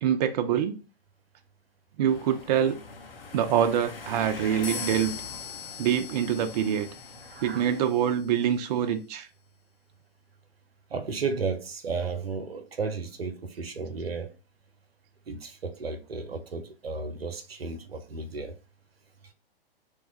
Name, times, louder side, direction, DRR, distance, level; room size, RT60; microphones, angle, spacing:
voice 1, 0.0-0.8 2.0-2.8 3.3-5.1 5.8-6.9 7.4-9.3, right 9 dB, 45° right, 0.4 m, -25 dB
sound 1, 2.0-7.8, left 4 dB, 75° left, 0.9 m, -43 dB
sound 2, 4.6-8.4, left 6 dB, 25° left, 0.4 m, -41 dB
voice 2, 7.2-7.7 10.9-14.3 15.3-18.6, right 4 dB, 85° right, 0.7 m, -33 dB
3.1 x 2.2 x 3.0 m
figure-of-eight pair, 110°, 29 cm